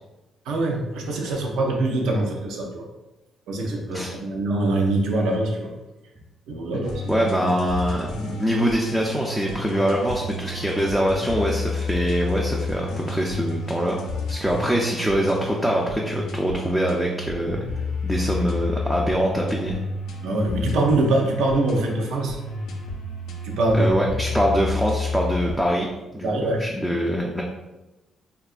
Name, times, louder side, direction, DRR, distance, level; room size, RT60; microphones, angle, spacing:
voice 1, 0.5-2.9 3.5-5.7 6.5-7.2 20.2-22.4 23.4-23.9 26.2-26.6, right 2 dB, 85° right, 0 dB, 0.5 m, -23 dB
sound 1, 6.8-25.6, left 3 dB, 80° left, 0.4 m, -31 dB
voice 2, 7.1-14.0 14.3-17.6 18.0-19.8 23.7-25.9 26.1-27.4, equal, ahead, -2 dB, 0.3 m, -24 dB
2.7 x 2.3 x 2.4 m, 1.0 s
cardioid pair, 90°, 0 cm